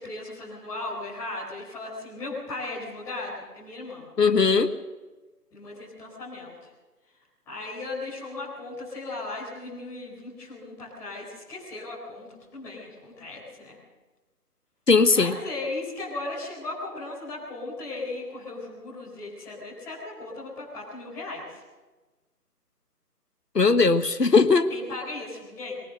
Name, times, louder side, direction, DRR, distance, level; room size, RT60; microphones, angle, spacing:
voice 1, 0.0-4.1 5.5-6.7 7.5-13.8 15.1-21.6 24.7-25.8, left 2 dB, 5° left, -9 dB, 4.4 m, -37 dB
voice 2, 4.2-4.7 14.9-15.3 23.5-24.7, left 4 dB, 85° left, 10 dB, 1.4 m, -19 dB
23.0 x 18.0 x 6.7 m, 1.2 s
figure-of-eight pair, 160°, 48 cm